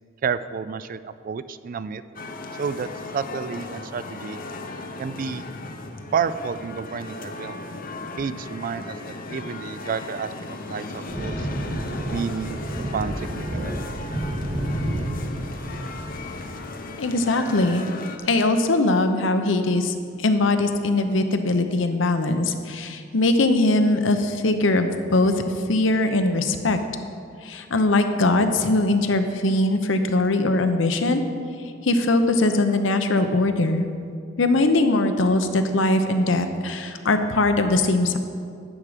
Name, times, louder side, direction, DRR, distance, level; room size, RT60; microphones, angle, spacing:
voice 1, 0.2-2.0 2.5-4.4 5.0-5.4 6.1-7.6 8.2-10.3 10.7-11.5 12.1-12.6 12.9-13.8, right 6 dB, 45° right, 14 dB, 0.3 m, -30 dB
sound 1, 2.2-18.2, left 3 dB, 50° left, 0.7 m, -37 dB
sound 2, 11.1-16.5, right 1 dB, 70° right, 2.2 m, -30 dB
voice 2, 17.0-17.8 18.3-25.3 25.7-26.8 27.4-31.2 31.8-33.9 34.4-38.2, left 2 dB, 80° left, 7 dB, 0.8 m, -21 dB
11.0 x 7.4 x 5.0 m, 2.3 s
head